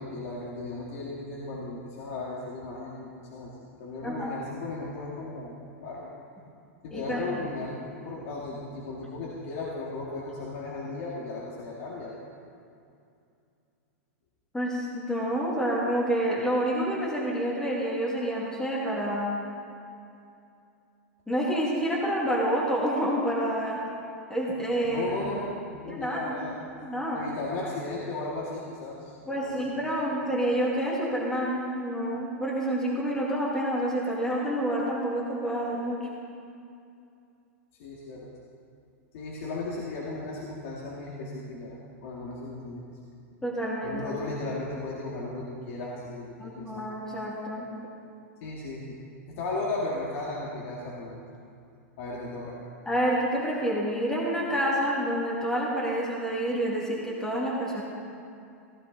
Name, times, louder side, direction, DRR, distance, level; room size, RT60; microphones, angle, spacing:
voice 1, 0.0-3.5 3.8-6.1 6.8-12.1 24.8-26.7 27.1-29.9 37.8-38.3 39.1-42.8 43.8-46.7 48.4-49.0 49.3-51.2 52.0-52.6, left 2 dB, 60° left, -5 dB, 2.0 m, -36 dB
voice 2, 6.9-7.2 14.5-19.4 21.3-23.8 24.3-25.1 25.9-26.4 26.8-27.2 29.3-36.0 43.4-44.1 46.4-47.7 52.9-57.8, right 1 dB, 5° left, -5 dB, 2.2 m, -28 dB
15.5 x 12.5 x 3.9 m, 2.5 s
hypercardioid pair, 130°, 8 cm